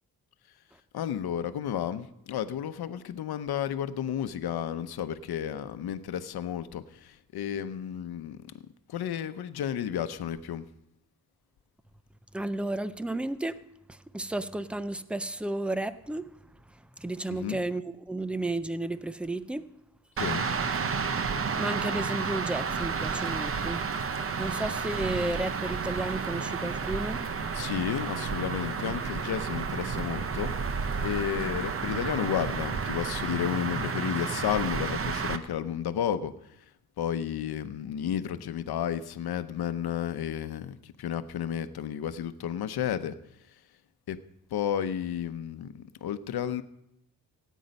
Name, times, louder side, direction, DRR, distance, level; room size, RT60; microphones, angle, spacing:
voice 1, 0.9-8.4 8.9-10.7 17.3-17.6 20.2-20.5 27.5-30.5 31.0-36.3 37.0-43.2 44.1-44.2 44.5-46.6, left 9 dB, 80° left, 0.8 m, -32 dB
voice 2, 12.3-13.6 13.9-16.3 16.7-19.7 21.1-21.3 21.6-23.9 24.1-27.2, right 2 dB, 5° right, 0.4 m, -33 dB
sound 1, 20.2-35.4, right 5 dB, 35° right, 0.7 m, -31 dB
17.0 x 9.3 x 5.3 m
wide cardioid pair, 155°, 37 cm